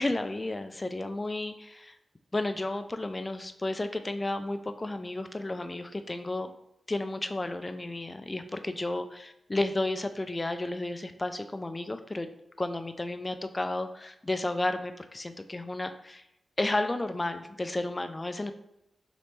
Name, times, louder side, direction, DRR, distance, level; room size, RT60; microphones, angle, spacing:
voice 1, 0.0-2.0 2.3-6.5 6.9-12.3 12.6-16.2 16.6-18.5, left 2 dB, 30° left, 9 dB, 0.3 m, -32 dB
3.1 x 3.1 x 2.9 m, 0.84 s
supercardioid pair, 40°, 0 cm